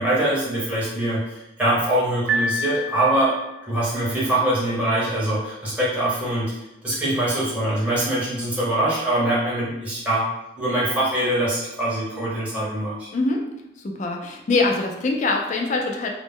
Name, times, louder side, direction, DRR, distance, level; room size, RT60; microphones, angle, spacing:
voice 1, 0.0-3.4 3.6-6.5 6.8-10.3 10.6-13.1, right 1 dB, 10° right, -8 dB, 0.7 m, -23 dB
Piano, 2.3-3.6, right 1 dB, 80° right, 0.5 m, -27 dB
voice 2, 13.1-13.4 13.8-16.1, left 3 dB, 40° left, 2 dB, 0.3 m, -23 dB
2.0 x 2.0 x 3.5 m, 0.91 s
head